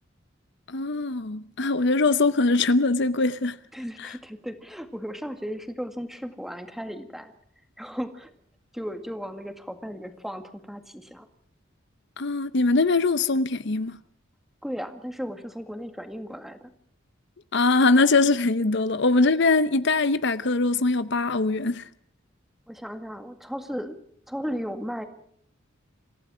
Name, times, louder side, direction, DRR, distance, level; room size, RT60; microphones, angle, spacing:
voice 1, 0.7-3.6 4.0-4.2 12.2-14.0 17.5-21.8, left 3 dB, 60° left, 0.8 m, -22 dB
voice 2, 3.7-7.3 7.8-8.3 8.7-11.3 14.6-16.7 22.7-24.0 24.3-25.0, equal, ahead, 1.9 m, -35 dB
27.0 x 15.5 x 6.2 m
head